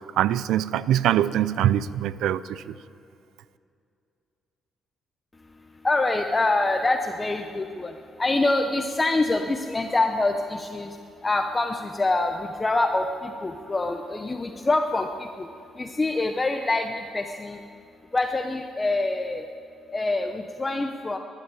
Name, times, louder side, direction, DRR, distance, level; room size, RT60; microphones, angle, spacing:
voice 1, 0.2-2.7, right 11 dB, 85° right, 17 dB, 0.4 m, -23 dB
voice 2, 5.7-15.5 15.7-17.6 18.1-19.5 19.9-21.2, left 2 dB, 20° left, 5 dB, 0.7 m, -25 dB
13.0 x 11.5 x 8.9 m, 2.5 s
cardioid pair, 90°, 0 cm